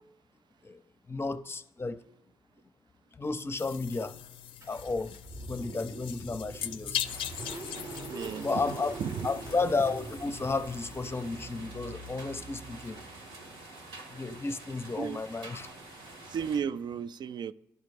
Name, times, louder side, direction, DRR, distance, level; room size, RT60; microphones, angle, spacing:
voice 1, 1.1-2.0 3.1-4.2 4.7-5.2 5.5-7.0 8.4-8.9 9.2-13.0 14.1-15.7, left 3 dB, 25° left, 0.6 m, -33 dB
sound 1, 3.6-11.7, left 10 dB, 75° left, 0.4 m, -41 dB
Car / Engine starting, 4.6-13.4, right 2 dB, 35° right, 0.8 m, -44 dB
sound 2, 7.0-16.6, right 2 dB, 80° right, 1.4 m, -48 dB
voice 2, 8.1-8.6 9.0-9.3 15.0-15.2 16.3-17.5, right 7 dB, 55° right, 0.3 m, -34 dB
11.0 x 4.0 x 3.2 m
hypercardioid pair, 45°, 9 cm